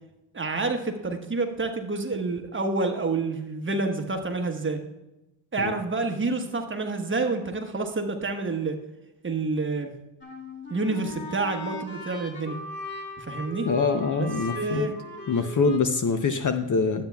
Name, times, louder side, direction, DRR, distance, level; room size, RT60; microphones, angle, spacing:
voice 1, 0.3-4.8 5.5-8.8 9.2-9.9 10.7-12.6 13.2-13.7 14.5-14.9, right 3 dB, 25° right, 4 dB, 1.2 m, -28 dB
sound 1, 10.2-15.8, equal, 20° left, 2.5 m, -38 dB
voice 2, 13.7-14.9 15.3-17.0, left 4 dB, 40° left, 9 dB, 0.7 m, -24 dB
12.5 x 8.6 x 2.3 m, 0.95 s
cardioid pair, 85°, 49 cm